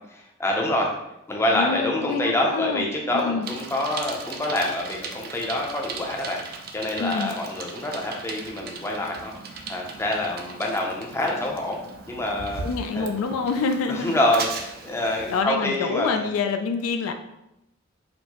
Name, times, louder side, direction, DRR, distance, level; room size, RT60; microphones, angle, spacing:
voice 1, 0.1-0.9 1.3-6.4 6.7-9.3 9.7-11.8 12.1-12.6 12.9-13.1 13.9-16.2, left 1 dB, 10° left, -1 dB, 0.5 m, -26 dB
voice 2, 1.5-2.9 3.1-3.5 7.0-7.3 12.6-14.2 15.3-17.1, left 5 dB, 75° left, 7 dB, 0.3 m, -26 dB
Bicycle, 3.4-15.4, right 4 dB, 45° right, 0.4 m, -38 dB
4.3 x 2.0 x 2.8 m, 0.88 s
head